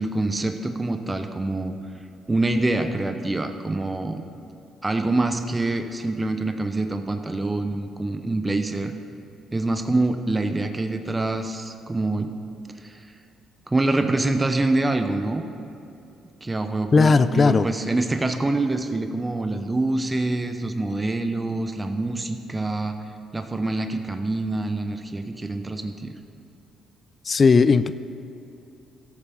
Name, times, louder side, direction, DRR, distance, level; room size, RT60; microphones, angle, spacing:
voice 1, 0.0-1.8 2.3-4.2 4.8-8.9 9.5-12.3 12.8-13.1 13.7-15.4 16.4-22.9 23.3-26.1, right 2 dB, 20° right, 7 dB, 0.8 m, -25 dB
voice 2, 16.9-17.7 27.2-27.9, left 4 dB, 40° left, 14 dB, 0.4 m, -17 dB
13.5 x 7.1 x 5.5 m, 2.7 s
supercardioid pair, 60°, 0 cm